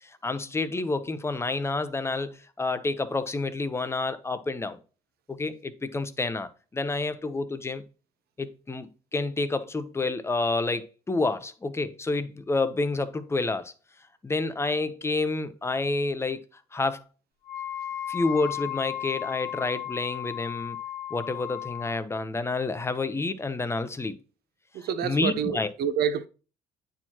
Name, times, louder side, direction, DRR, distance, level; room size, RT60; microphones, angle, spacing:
voice 1, 0.0-4.8 5.3-7.8 8.4-13.7 14.2-16.4 16.7-17.0 18.1-20.8 21.1-24.2 25.0-25.7, left 3 dB, 15° left, 0.7 m, -29 dB
Wind instrument woodwind instrument, 17.5-22.0, left 11 dB, 75° left, 1.9 m, -35 dB
voice 2, 24.7-26.3, right 8 dB, 65° right, 0.7 m, -28 dB
9.4 x 4.5 x 2.9 m
cardioid pair, 110°, 17 cm